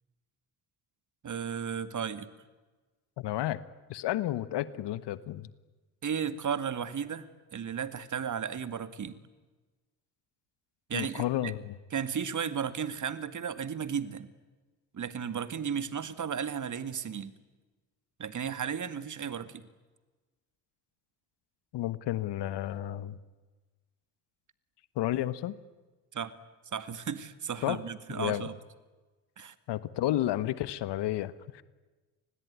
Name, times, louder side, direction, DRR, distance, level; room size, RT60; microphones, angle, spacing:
voice 1, 1.2-2.3 6.0-7.2 7.5-9.1 10.9-11.5 11.9-14.3 14.9-17.3 18.2-19.7 26.1-26.3 26.7-28.5 29.4-29.5, right 7 dB, 40° right, 13 dB, 2.2 m, -34 dB
voice 2, 3.2-3.6 3.9-5.5 10.9-11.7 21.7-23.2 24.9-25.5 27.6-27.8 28.1-28.5 29.7-31.6, left 13 dB, 60° left, 16 dB, 1.4 m, -31 dB
29.5 x 20.5 x 9.6 m, 1.3 s
hypercardioid pair, 65°, 46 cm